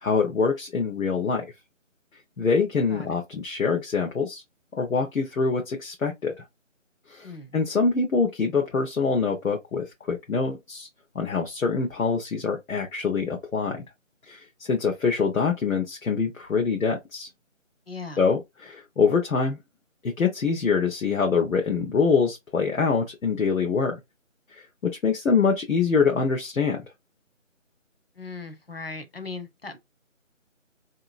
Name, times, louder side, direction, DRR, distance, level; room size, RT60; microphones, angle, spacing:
voice 1, 0.0-1.4 2.4-4.4 4.8-6.4 7.1-10.9 11.1-13.8 14.3-17.3 18.2-19.6 20.0-24.0 24.5-26.8, left 5 dB, 80° left, 0.9 m, -25 dB
voice 2, 7.2-7.5 17.9-18.3 28.2-29.8, left 3 dB, 45° left, 0.6 m, -38 dB
3.2 x 2.8 x 2.4 m
figure-of-eight pair, 180°, 40 cm